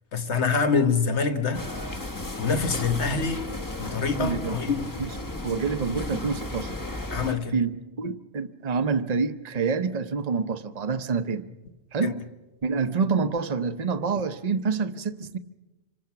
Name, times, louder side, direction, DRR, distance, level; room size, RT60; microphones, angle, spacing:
voice 1, 0.1-1.7 2.4-3.4 3.8-4.9 7.1-7.6 12.0-12.1, left 5 dB, 75° left, 1.6 m, -25 dB
sound 1, 1.5-7.3, left 2 dB, 20° left, 1.1 m, -34 dB
voice 2, 4.2-4.6 5.0-5.2 5.4-6.7 7.5-7.7 8.0-11.5 11.9-12.2 12.6-15.4, right 5 dB, 40° right, 0.9 m, -27 dB
27.0 x 25.0 x 5.9 m
omnidirectional pair, 1.1 m